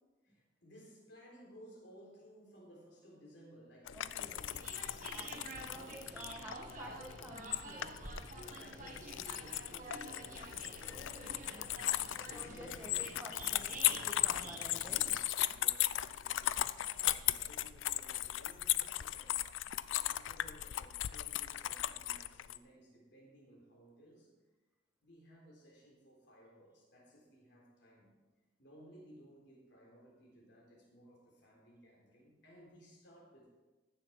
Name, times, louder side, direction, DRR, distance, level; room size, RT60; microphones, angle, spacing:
voice 1, 0.2-6.1 8.3-11.1 11.7-13.2 15.5-16.7 17.0-19.5 19.9-24.3 25.0-28.1 28.6-33.6, equal, 60° left, -3 dB, 3.9 m, -59 dB
sound 1, 3.9-22.6, left 14 dB, 85° left, 0.4 m, -37 dB
voice 2, 3.9-4.4 5.1-8.0 10.9-15.2 15.5-15.6, equal, 10° right, 0 dB, 1.3 m, -52 dB
sound 2, 4.4-15.2, right 2 dB, 45° right, 1.6 m, -49 dB
15.0 x 7.0 x 4.7 m, 1.2 s
head